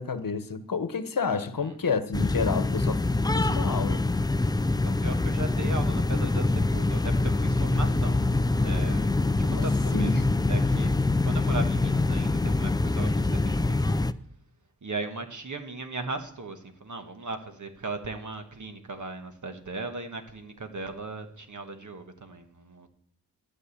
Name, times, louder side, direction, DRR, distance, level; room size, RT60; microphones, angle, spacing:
voice 1, 0.0-3.0 3.3-4.0 9.4-9.6 9.9-10.2, left 5 dB, 60° left, 1.1 m, -30 dB
voice 2, 1.4-1.8 4.8-9.1 9.4-10.1 10.5-10.9 11.2-13.8 14.8-22.9, right 3 dB, 50° right, 1.3 m, -38 dB
sound 1, 2.1-14.1, left 2 dB, 10° left, 0.3 m, -25 dB
12.5 x 4.9 x 8.4 m
wide cardioid pair, 85°, 37 cm